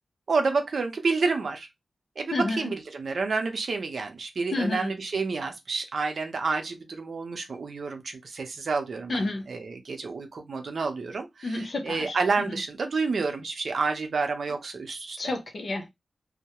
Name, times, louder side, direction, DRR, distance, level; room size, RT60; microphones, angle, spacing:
voice 1, 0.3-1.7 2.2-15.2, right 4 dB, 70° right, 0.6 m, -29 dB
voice 2, 2.3-2.7 4.5-4.9 9.1-9.4 11.4-12.2 12.5-12.6 15.2-15.9, left 2 dB, 60° left, 0.6 m, -30 dB
2.2 x 2.1 x 2.9 m
wide cardioid pair, 100°, 0 cm